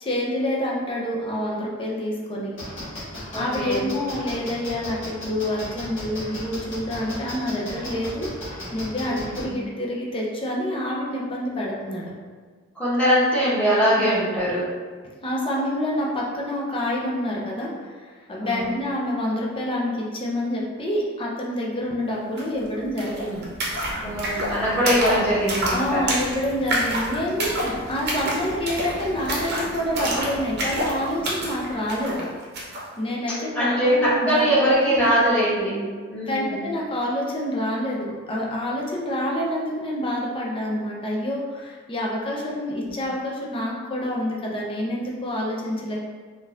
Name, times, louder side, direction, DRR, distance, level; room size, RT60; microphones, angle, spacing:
voice 1, 0.0-2.5 3.3-12.1 14.0-14.1 15.2-23.5 25.7-32.3 33.0-34.5 34.9-35.1 36.2-46.0, left 1 dB, 25° left, -3 dB, 0.6 m, -27 dB
sound 1, 2.6-9.4, left 1 dB, 65° left, 1.4 m, -35 dB
voice 2, 3.3-3.9 9.0-9.6 12.7-14.7 18.4-18.8 24.0-26.0 33.5-35.8 36.1-36.6 42.8-42.9, equal, 5° left, -11 dB, 1.2 m, -22 dB
sound 2, 22.4-22.5 22.7-32.9, right 1 dB, 55° right, 0.7 m, -28 dB
3.7 x 2.6 x 2.4 m, 1.5 s
head